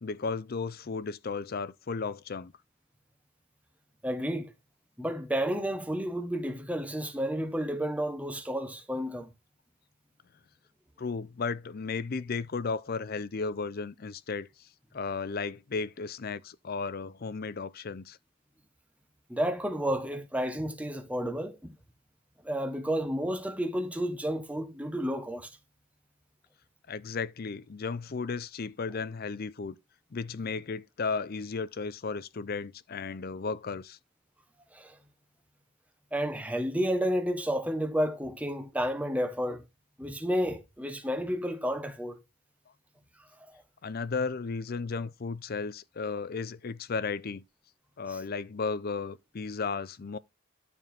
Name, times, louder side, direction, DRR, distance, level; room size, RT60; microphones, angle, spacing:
voice 1, 0.0-2.5 11.0-14.7 14.9-18.2 26.9-29.8 30.1-34.0 43.8-47.4 48.0-50.2, left 4 dB, 40° left, 0.5 m, -34 dB
voice 2, 4.0-4.5 5.0-9.3 19.3-21.8 22.4-25.5 34.7-35.0 36.1-39.6 40.0-42.2 43.5-43.6 48.1-48.2, equal, 5° right, 1.1 m, -31 dB
12.0 x 4.3 x 4.4 m
head